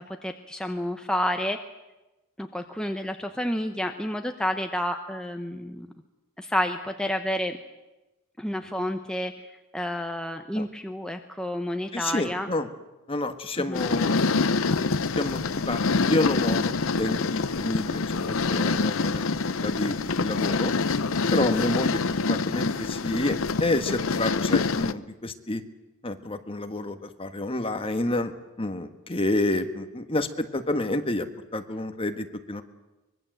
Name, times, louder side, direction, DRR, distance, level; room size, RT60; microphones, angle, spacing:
voice 1, 0.0-1.6 2.4-5.9 6.4-7.6 8.4-9.3 9.7-12.5 13.7-13.9, left 1 dB, 5° left, 5 dB, 1.0 m, -30 dB
voice 2, 11.9-12.7 13.1-14.4 15.1-20.7 21.3-22.0 22.3-25.6 26.0-31.3 31.5-32.6, left 2 dB, 25° left, 8 dB, 1.5 m, -29 dB
sound 1, 13.7-24.9, left 4 dB, 70° left, 0.8 m, -26 dB
24.5 x 21.5 x 7.9 m, 1.0 s
head